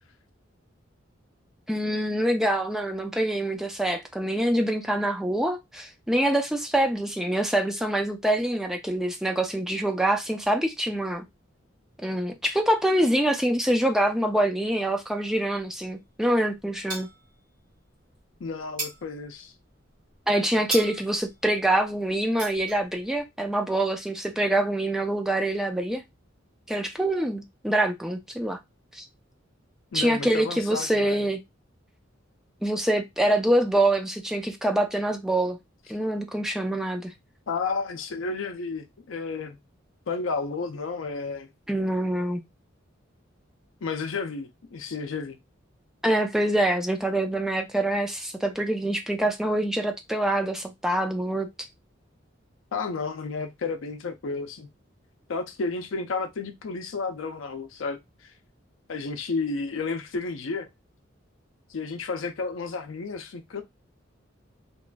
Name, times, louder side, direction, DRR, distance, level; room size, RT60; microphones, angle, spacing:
voice 1, 1.7-11.2 12.0-17.1 20.3-26.0 26.7-28.6 28.9-29.0 29.9-31.4 32.6-35.6 35.9-37.1 41.7-42.4 46.0-51.5, right 1 dB, ahead, 0.4 m, -25 dB
sound 1, 15.2-16.3 16.6-17.7 18.0-23.2, right 3 dB, 45° right, 1.3 m, -38 dB
voice 2, 18.4-19.5 29.9-31.3 37.5-39.6 40.1-41.5 43.8-45.4 52.7-54.7 55.3-58.0 58.9-60.7 61.7-63.6, left 4 dB, 80° left, 0.5 m, -32 dB
2.9 x 2.4 x 2.2 m
head